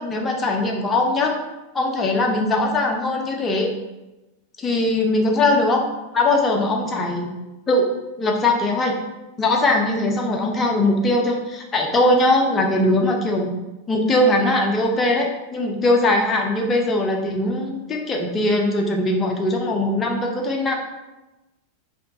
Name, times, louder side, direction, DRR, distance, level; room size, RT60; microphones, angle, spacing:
voice 1, 0.0-1.4 1.7-3.7 4.6-5.8 6.1-7.3 7.7-7.9 8.2-9.0 9.4-13.5 13.9-20.7, left 2 dB, 20° left, 1 dB, 0.6 m, -20 dB
4.3 x 3.0 x 2.7 m, 1.0 s
figure-of-eight pair, 90°, 0 cm